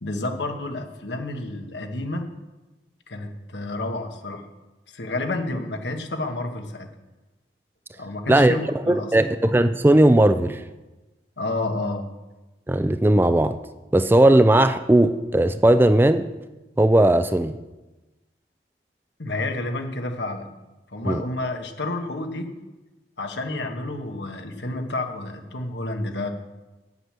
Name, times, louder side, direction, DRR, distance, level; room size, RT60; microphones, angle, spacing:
voice 1, 0.0-2.3 3.1-4.5 4.9-6.9 8.0-9.1 11.4-12.1 19.2-20.5 20.9-22.5 23.2-26.3, left 2 dB, 85° left, 1.4 m, -30 dB
voice 2, 8.9-10.6 12.7-13.6 13.9-16.3 16.8-17.5 21.0-21.2, right 1 dB, 10° right, 0.4 m, -17 dB
9.3 x 8.1 x 7.4 m
head